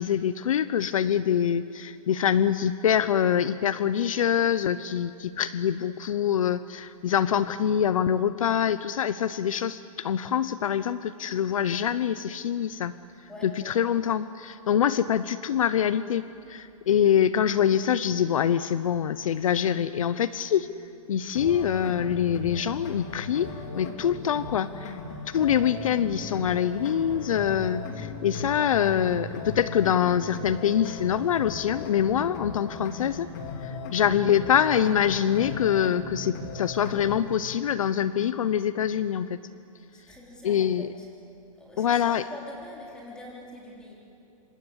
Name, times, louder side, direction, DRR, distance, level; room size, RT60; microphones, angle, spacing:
voice 1, 0.0-12.9 13.4-20.7 21.1-23.5 23.7-25.0 25.3-33.3 33.6-39.4 40.4-40.9 41.8-42.2, left 9 dB, 65° left, 14 dB, 0.8 m, -25 dB
voice 2, 13.3-13.8 39.9-41.1 41.6-44.0, left 1 dB, 5° left, -3 dB, 4.0 m, -44 dB
sound 1, 21.4-37.4, left 4 dB, 30° left, 2.6 m, -37 dB
26.5 x 26.0 x 8.2 m, 2.7 s
hypercardioid pair, 170°, 19 cm